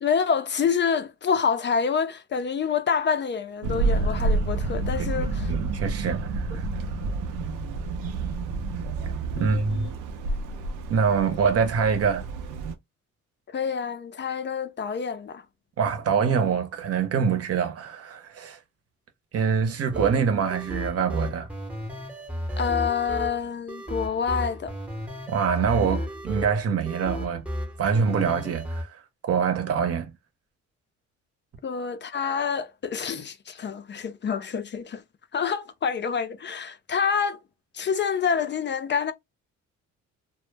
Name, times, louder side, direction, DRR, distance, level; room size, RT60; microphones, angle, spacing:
voice 1, 0.0-5.5 9.4-9.9 11.3-11.4 13.5-15.4 22.6-24.7 31.6-35.0 35.3-37.4 37.7-39.1, left 6 dB, 40° left, 0.4 m, -27 dB
sound 1, 3.6-12.8, right 3 dB, 85° right, 0.5 m, -29 dB
voice 2, 5.5-6.7 9.4-9.9 10.9-12.3 15.8-18.6 19.3-21.5 25.3-27.4 27.8-29.0 29.3-30.1, right 6 dB, 50° right, 0.7 m, -25 dB
sound 2, 19.9-28.8, equal, 5° right, 0.7 m, -33 dB
2.1 x 2.0 x 3.2 m
cardioid pair, 90°, 30 cm